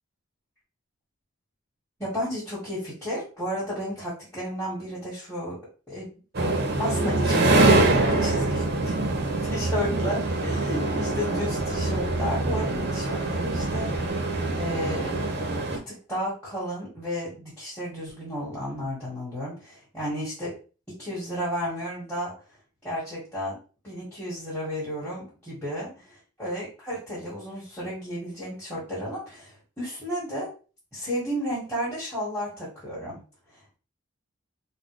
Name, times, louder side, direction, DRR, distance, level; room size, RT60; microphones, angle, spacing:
voice 1, 2.0-5.6 5.9-6.2 6.8-9.0 9.5-13.9 14.6-15.2 15.7-20.5 21.0-22.3 22.8-23.6 23.8-25.9 26.4-30.5 30.9-33.2, equal, 10° left, -10 dB, 1.5 m, -32 dB
sound 1, 6.3-15.8, right 2 dB, 50° right, 0.7 m, -24 dB
3.9 x 2.2 x 3.2 m, 0.35 s
head